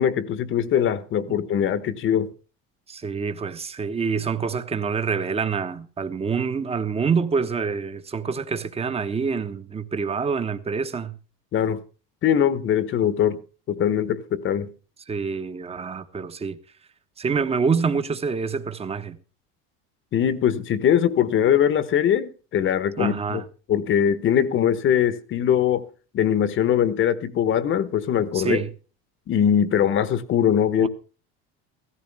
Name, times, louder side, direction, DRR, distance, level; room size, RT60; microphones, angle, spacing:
voice 1, 0.0-2.3 11.5-11.8 12.2-13.4 13.7-14.7 20.1-23.4 23.7-25.8 26.1-28.6 29.3-30.9, left 9 dB, 40° left, 1.1 m, -21 dB
voice 2, 2.9-11.2 15.1-16.6 17.2-19.2 23.0-23.4 28.3-28.7 30.8-30.9, right 5 dB, 20° right, 1.1 m, -26 dB
16.0 x 14.5 x 3.5 m
supercardioid pair, 125°, 30 cm